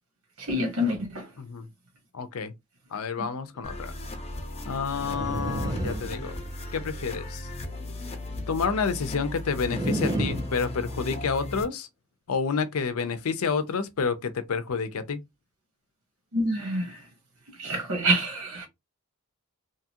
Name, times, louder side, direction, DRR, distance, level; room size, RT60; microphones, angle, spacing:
voice 1, 0.4-1.3 3.2-3.3 16.3-17.0 17.6-18.7, equal, 85° right, 1.2 m, -27 dB
voice 2, 1.4-1.7 2.1-2.5 2.9-3.9 4.7-6.4 6.7-7.5 8.5-11.9 12.3-15.2, left 5 dB, 80° left, 0.5 m, -29 dB
sound 1, 3.6-11.6, left 2 dB, 30° left, 0.6 m, -36 dB
sound 2, 5.0-6.8 9.7-11.3, right 1 dB, 20° right, 0.4 m, -32 dB
2.8 x 2.4 x 2.8 m
head